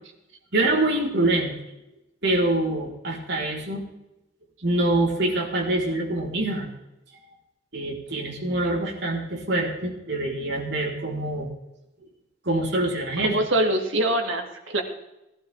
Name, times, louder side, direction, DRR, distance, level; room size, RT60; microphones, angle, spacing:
voice 1, 0.5-1.5 2.2-3.9 4.6-6.7 7.7-11.5 12.4-13.5, right 2 dB, 60° right, -2 dB, 4.3 m, -25 dB
voice 2, 13.2-14.8, right 1 dB, 90° right, 3 dB, 2.6 m, -24 dB
19.5 x 12.0 x 3.7 m, 0.91 s
head